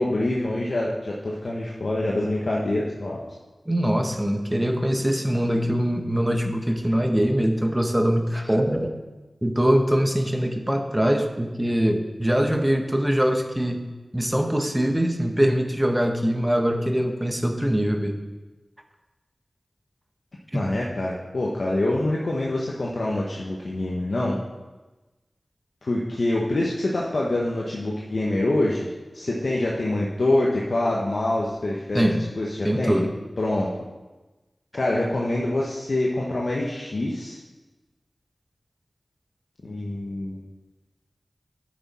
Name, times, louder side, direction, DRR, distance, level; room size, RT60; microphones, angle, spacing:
voice 1, 0.0-3.2 20.5-24.4 25.8-28.9 29.1-32.0 32.4-33.0 33.4-33.7 34.7-37.4 39.6-40.4, left 1 dB, 70° left, -3 dB, 1.0 m, -25 dB
voice 2, 3.7-8.9 9.4-13.8 14.1-18.2 31.9-32.2 32.6-33.1, equal, 15° right, 5 dB, 0.9 m, -23 dB
9.8 x 6.2 x 4.2 m, 1.2 s
wide cardioid pair, 55°, 0 cm